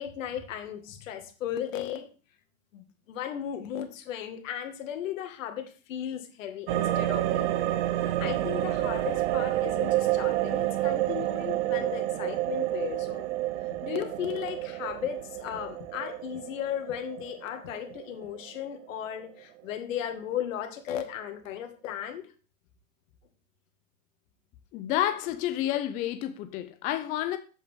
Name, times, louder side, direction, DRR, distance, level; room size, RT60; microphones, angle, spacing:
voice 1, 0.0-2.1 2.7-7.7 8.0-13.3 13.8-22.3, left 10 dB, 65° left, 1.9 m, -36 dB
sound 1, 6.7-18.9 19.2-19.3, right 14 dB, 55° right, 0.8 m, -29 dB
voice 2, 24.7-27.4, left 12 dB, 20° left, 0.4 m, -29 dB
7.9 x 7.4 x 3.6 m
hypercardioid pair, 120°, 42 cm